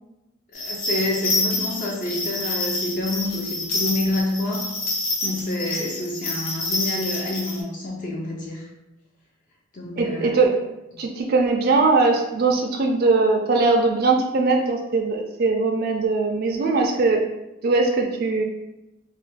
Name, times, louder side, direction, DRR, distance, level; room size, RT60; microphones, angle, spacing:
sound 1, 0.5-7.6, left 2 dB, 75° left, 0.7 m, -27 dB
voice 1, 0.5-4.7 5.2-8.7 9.7-10.4, left 2 dB, 40° left, -2 dB, 0.4 m, -28 dB
voice 2, 10.0-10.5 11.0-17.2 17.6-18.4, right 3 dB, 45° right, 1 dB, 0.3 m, -20 dB
2.4 x 2.2 x 3.8 m, 0.93 s
head